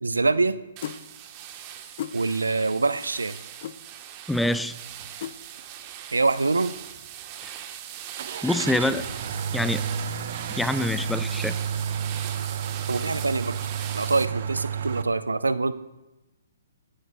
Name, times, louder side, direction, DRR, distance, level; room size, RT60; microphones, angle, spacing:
voice 1, 0.0-0.6 2.1-3.4 6.1-6.7 12.9-13.6 13.9-15.7, right 3 dB, 80° right, 13 dB, 0.6 m, -24 dB
sound 1, 0.8-1.0 2.0-2.2 3.6-3.8 5.2-5.4, left 10 dB, 50° left, 0.6 m, -33 dB
sound 2, 0.8-14.3, right 10 dB, 30° right, 1.1 m, -40 dB
voice 2, 4.3-4.7 7.4-7.5 8.4-9.0 9.5-9.8 10.6-11.6, left 1 dB, 5° left, 13 dB, 0.4 m, -25 dB
sound 3, 4.9-5.1 5.6-5.7 8.2-15.0, right 7 dB, 55° right, 0.9 m, -31 dB
23.5 x 11.5 x 2.3 m, 1.0 s
figure-of-eight pair, 130°, 0 cm